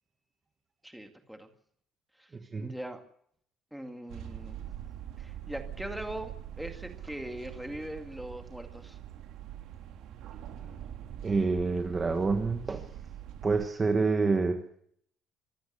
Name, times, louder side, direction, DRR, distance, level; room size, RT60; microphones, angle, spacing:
voice 1, 0.8-1.5 2.2-2.3 2.6-3.0 3.7-4.6 5.2-9.0, right 1 dB, ahead, 5 dB, 2.1 m, -41 dB
sound 1, 4.1-13.7, right 10 dB, 60° right, 2.5 m, -43 dB
voice 2, 11.2-12.9 13.4-14.6, right 4 dB, 20° right, 5 dB, 1.4 m, -27 dB
25.0 x 15.0 x 6.9 m, 0.67 s
cardioid pair, 175°, 0 cm